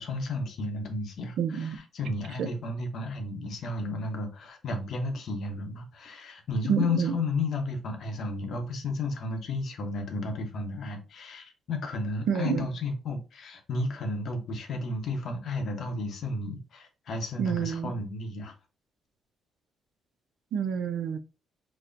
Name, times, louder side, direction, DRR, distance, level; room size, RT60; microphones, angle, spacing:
voice 1, 0.0-18.5, left 2 dB, 65° left, 0.9 m, -33 dB
voice 2, 1.4-1.8 2.4-2.5 6.7-7.2 12.3-12.7 17.4-17.9 20.5-21.2, right 7 dB, 75° right, 0.4 m, -28 dB
4.1 x 2.1 x 2.5 m
cardioid pair, 90°, 0 cm